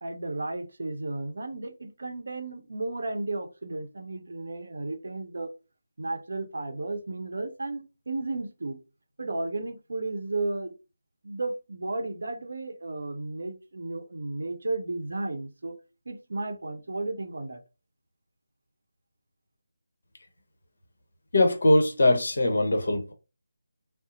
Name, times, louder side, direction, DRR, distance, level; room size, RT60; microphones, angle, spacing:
voice 1, 0.0-5.5 6.0-8.8 9.2-10.7 11.2-15.8 16.1-17.6, right 2 dB, 60° right, 0.6 m, -33 dB
voice 2, 21.3-23.1, left 1 dB, 55° left, 0.9 m, -21 dB
2.7 x 2.0 x 3.8 m
figure-of-eight pair, 155°, 0 cm